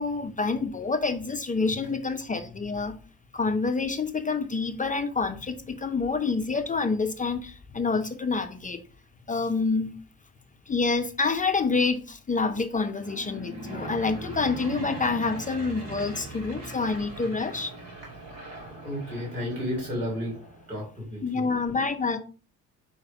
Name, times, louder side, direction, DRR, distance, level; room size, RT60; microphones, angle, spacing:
voice 1, 0.0-3.0 3.3-8.8 9.3-9.9 10.7-17.7 21.2-22.2, left 4 dB, 20° left, 0.6 m, -27 dB
Aircraft / Engine, 12.9-20.8, right 2 dB, 60° right, 3.0 m, -40 dB
voice 2, 18.8-20.4 20.7-21.5, equal, 80° right, 3.0 m, -32 dB
4.7 x 4.7 x 4.6 m
figure-of-eight pair, 50°, 44 cm